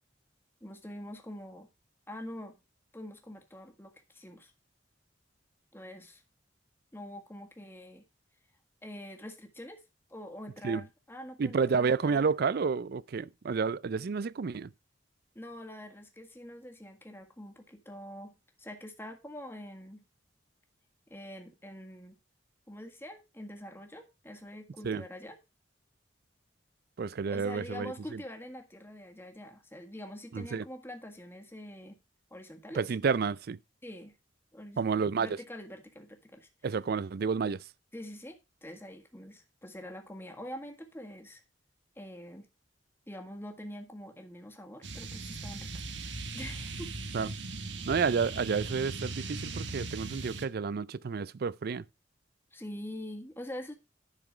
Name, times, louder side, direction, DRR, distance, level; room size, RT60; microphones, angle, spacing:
voice 1, 0.6-1.7 2.1-2.6 2.9-4.5 5.7-6.2 6.9-8.1 8.8-9.8 10.1-12.3 15.3-18.3 18.6-20.0 21.1-22.2 22.7-25.4 27.3-32.0 32.3-32.8 33.8-34.2 34.5-36.5 37.9-41.4 41.9-42.5 43.1-45.7 46.0-46.9 52.5-53.7, left 1 dB, 10° left, 1.6 m, -45 dB
voice 2, 11.4-14.7 24.8-25.0 27.0-28.2 30.3-30.6 32.8-33.6 34.8-35.4 36.6-37.6 47.1-47.3 47.9-51.8, right 5 dB, 55° right, 0.4 m, -30 dB
sound 1, 44.8-50.5, right 3 dB, 70° right, 1.4 m, -39 dB
10.5 x 6.0 x 5.0 m
head